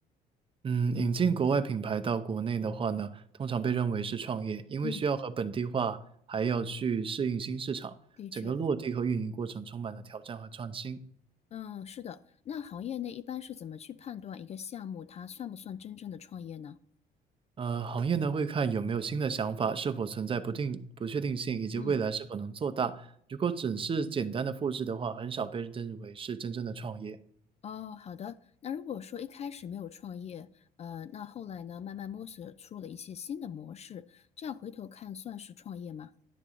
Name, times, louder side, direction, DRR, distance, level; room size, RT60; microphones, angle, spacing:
voice 1, 0.6-6.0 6.3-7.9 8.3-11.0 17.6-27.2, right 6 dB, 30° right, 0.6 m, -31 dB
voice 2, 8.2-8.5 11.5-16.8 21.8-22.0 27.6-36.1, left 9 dB, 40° left, 0.4 m, -41 dB
11.0 x 6.7 x 3.7 m
cardioid pair, 110°, 17 cm